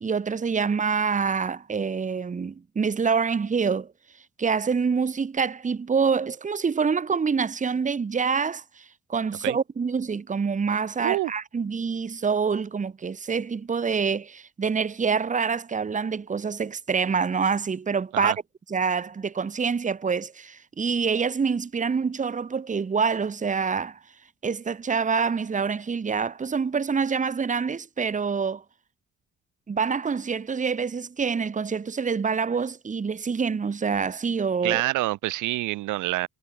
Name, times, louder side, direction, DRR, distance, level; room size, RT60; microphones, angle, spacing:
voice 1, 0.0-3.9 4.4-8.8 9.1-18.3 18.7-24.0 24.4-28.6 29.7-34.8, right 5 dB, 25° right, 1.0 m, -26 dB
voice 2, 11.0-11.3 18.1-18.4 34.6-36.3, right 18 dB, 85° right, 0.7 m, -26 dB
cardioid pair, 90°, 30 cm